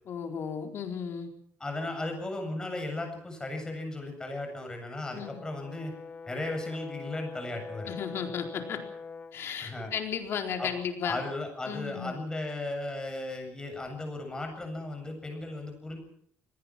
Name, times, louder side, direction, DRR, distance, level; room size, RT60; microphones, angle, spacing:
voice 1, 0.1-1.3 5.1-5.4 7.9-8.8 9.3-11.2 11.7-12.3, left 7 dB, 55° left, 4 dB, 4.3 m, -34 dB
voice 2, 1.6-5.9 6.2-7.9 9.6-9.9 10.6-10.7 11.0-16.0, left 2 dB, 15° left, 4 dB, 8.0 m, -36 dB
Brass instrument, 5.2-9.4, left 4 dB, 30° left, 1.7 m, -43 dB
26.5 x 19.5 x 6.1 m, 0.65 s
cardioid pair, 135°, 5 cm